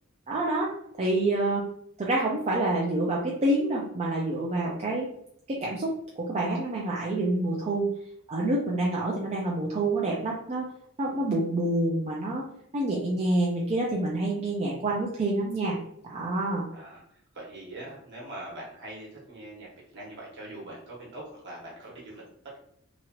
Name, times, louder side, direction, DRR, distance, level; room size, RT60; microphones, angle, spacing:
voice 1, 0.3-0.7 1.0-1.6 2.0-5.1 5.5-5.9 6.2-7.9 8.3-10.7 11.0-12.4 12.7-15.8 16.0-16.6, right 2 dB, 30° right, -4 dB, 0.4 m, -27 dB
voice 2, 16.7-17.0 17.3-22.6, right 1 dB, 55° right, -4 dB, 1.1 m, -43 dB
2.9 x 2.4 x 2.9 m, 0.70 s
head